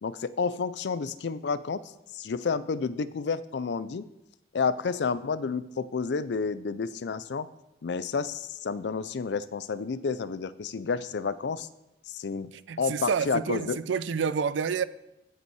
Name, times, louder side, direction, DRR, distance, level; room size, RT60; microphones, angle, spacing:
voice 1, 0.0-1.8 2.1-4.1 4.5-7.5 7.8-11.7 12.1-12.5 12.8-13.8, left 5 dB, 65° left, 0.4 m, -30 dB
voice 2, 12.7-14.8, right 6 dB, 85° right, 0.4 m, -28 dB
13.5 x 5.5 x 4.7 m
head